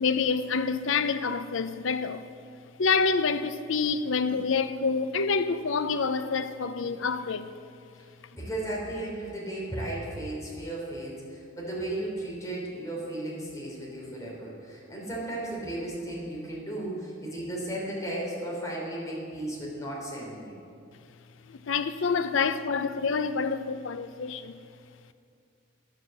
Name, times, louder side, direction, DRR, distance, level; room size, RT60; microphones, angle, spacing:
voice 1, 0.0-2.3 2.8-7.5 21.5-24.6, left 5 dB, 65° left, 0.5 m, -27 dB
voice 2, 8.3-20.6, right 1 dB, 15° left, 3.3 m, -35 dB
10.5 x 7.5 x 7.6 m
head